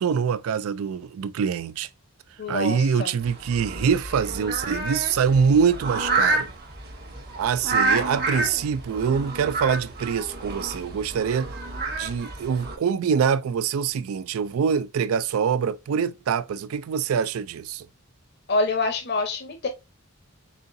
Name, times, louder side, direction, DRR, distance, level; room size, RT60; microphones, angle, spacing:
voice 1, 0.0-1.9 2.5-6.5 7.4-11.5 12.0-17.9, right 6 dB, 80° right, 0.3 m, -24 dB
voice 2, 2.4-3.1 18.5-19.7, left 3 dB, 50° left, 0.7 m, -26 dB
sound 1, 3.2-12.8, right 3 dB, 45° right, 1.0 m, -29 dB
4.2 x 3.7 x 2.5 m
head